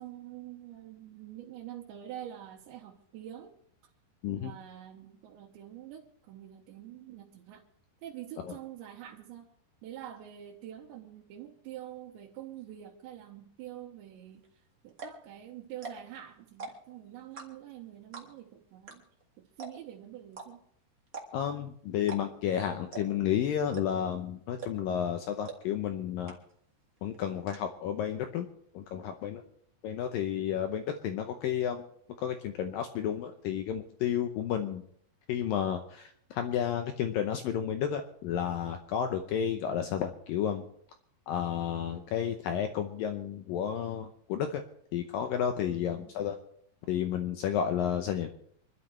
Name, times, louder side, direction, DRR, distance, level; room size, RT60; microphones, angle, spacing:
voice 1, 0.0-3.6 4.4-7.6 8.0-9.5 9.8-19.0 19.4-20.6 45.7-46.1, right 12 dB, 80° right, -2 dB, 3.4 m, -46 dB
sound 1, 14.4-14.5 14.9-15.2 15.7-16.2 16.5-16.9 17.4-17.7 18.1-18.5 18.9-19.0 19.2-19.3 19.6-19.9 20.3-20.5 21.1-21.5 22.0-22.5 22.9-23.2 23.7-24.1 24.6-24.9 25.4-25.6 25.9-26.0 26.3-26.7 27.0-27.6, right 4 dB, 50° right, 1.0 m, -42 dB
voice 2, 21.3-26.4 27.0-28.5 28.7-29.4 29.8-31.8 32.2-34.8 35.3-40.7 41.3-44.6 44.9-46.4 46.9-48.4, left 9 dB, 85° left, 6 dB, 2.0 m, -31 dB
26.5 x 12.0 x 3.2 m, 0.66 s
omnidirectional pair, 5.1 m